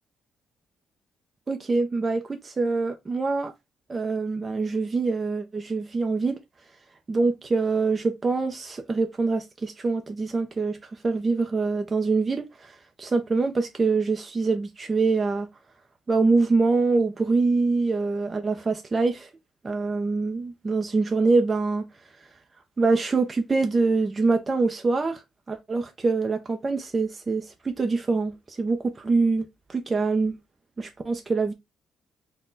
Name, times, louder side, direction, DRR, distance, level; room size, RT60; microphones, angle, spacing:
voice 1, 1.5-3.5 3.9-6.4 7.1-15.5 16.1-19.3 19.6-21.8 22.8-30.3 30.8-31.5, right 3 dB, 30° right, 0.5 m, -25 dB
4.1 x 2.2 x 3.8 m
cardioid pair, 90°, 0 cm